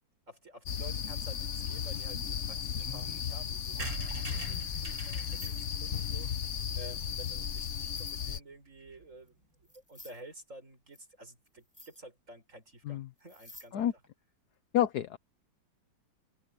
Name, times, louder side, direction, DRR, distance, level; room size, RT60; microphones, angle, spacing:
voice 1, 0.3-6.3 6.7-13.9, right 1 dB, 40° right, 6.5 m, -51 dB
sound 1, 0.7-8.4, left 8 dB, 50° left, 1.0 m, -35 dB
sound 2, 2.2-3.3 3.7-4.7 5.0-5.1 5.3-5.6 7.6-8.1 9.3-9.4 9.7-10.2 10.9-11.0 11.5-11.6 11.7-12.0 13.2-13.7 14.0-14.1, equal, 10° left, 6.6 m, -51 dB
sound 3, 3.8-7.5 7.9-8.0 8.2-8.3 8.5-8.6 8.8-9.1, right 2 dB, 70° right, 7.2 m, -44 dB
voice 2, 14.7-15.2, left 11 dB, 65° left, 1.3 m, -28 dB
omnidirectional pair, 2.0 m